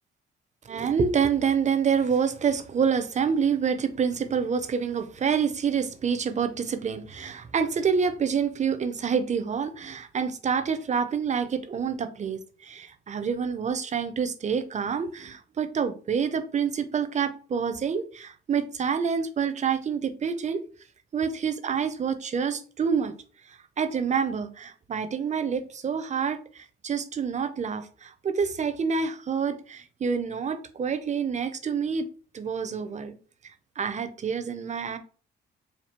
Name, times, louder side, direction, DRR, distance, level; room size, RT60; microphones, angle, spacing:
voice 1, 0.7-20.6 21.1-23.1 23.5-32.1 32.3-33.2 33.8-35.0, right 6 dB, 35° right, 0.6 m, -27 dB
4.3 x 2.7 x 3.0 m
cardioid pair, 90°, 20 cm